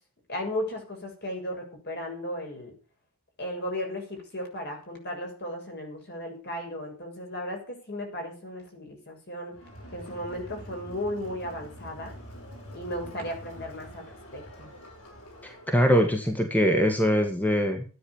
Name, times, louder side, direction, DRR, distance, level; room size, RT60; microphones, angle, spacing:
voice 1, 0.3-2.7 3.4-9.5 9.9-12.2 12.7-14.7, left 1 dB, 50° left, 2 dB, 7.1 m, -35 dB
Crowd, 9.5-15.8, equal, 80° left, 6.0 m, -45 dB
voice 2, 15.4-17.8, equal, 10° left, 5 dB, 1.7 m, -23 dB
13.5 x 9.7 x 7.2 m, 0.37 s
head